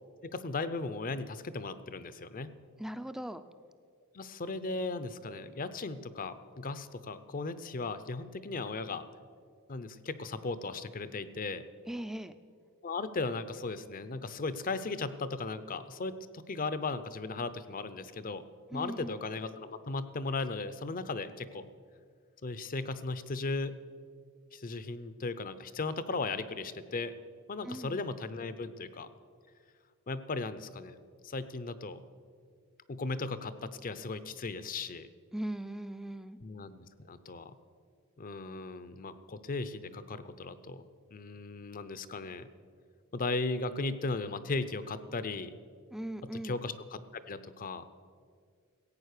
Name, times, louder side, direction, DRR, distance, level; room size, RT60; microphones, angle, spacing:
voice 1, 0.2-2.5 4.1-9.0 9.7-11.6 12.8-18.4 18.7-21.7 22.4-23.8 24.5-27.1 27.5-29.1 30.1-31.0 31.2-32.0 32.9-35.1 36.4-37.6 38.2-40.9 41.1-42.5 43.1-45.5 46.3-47.0 47.3-47.8, left 3 dB, 40° left, 13 dB, 0.6 m, -37 dB
voice 2, 2.8-3.4 11.9-12.3 18.7-19.2 27.6-28.0 35.3-36.4 45.9-46.6, right 1 dB, ahead, 11 dB, 0.4 m, -39 dB
15.5 x 8.7 x 6.6 m, 2.1 s
head